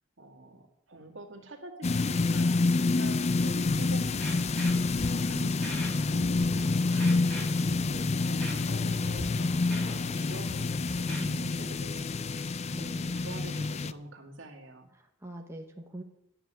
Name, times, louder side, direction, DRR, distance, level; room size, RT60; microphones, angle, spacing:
voice 1, 0.2-4.5 5.0-5.6 6.0-14.9, right 2 dB, 65° right, 2 dB, 2.3 m, -47 dB
sound 1, 1.8-13.9, left 3 dB, 35° left, 0.4 m, -28 dB
Scratching (performance technique), 3.6-3.7 4.2-5.1 5.6-5.9 6.2-6.6 7.0-7.9 8.4-8.5 9.0-9.2 9.5-10.1 10.5-11.2, equal, 5° left, 3.6 m, -40 dB
voice 2, 7.9-8.2 9.8-10.1 11.2-11.8 12.7-13.2 13.4-13.6 14.9-16.0, right 1 dB, 15° right, 2 dB, 1.1 m, -44 dB
12.0 x 7.4 x 9.0 m, 0.81 s
head